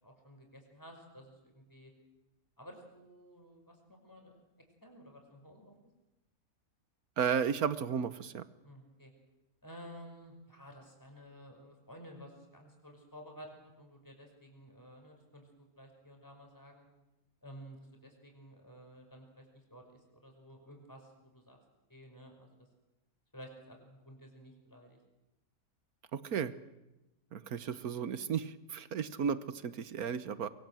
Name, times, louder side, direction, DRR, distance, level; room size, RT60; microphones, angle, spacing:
voice 1, 0.0-1.9 2.6-4.4 4.8-5.7 8.6-9.1 9.6-15.5 15.8-16.9 17.4-21.6 21.9-22.6 23.3-25.0, equal, 15° left, 3 dB, 5.5 m, -53 dB
voice 2, 7.2-8.4 26.1-26.5 27.3-30.5, right 7 dB, 80° right, 13 dB, 1.6 m, -34 dB
24.5 x 23.0 x 7.7 m, 0.98 s
omnidirectional pair, 1.6 m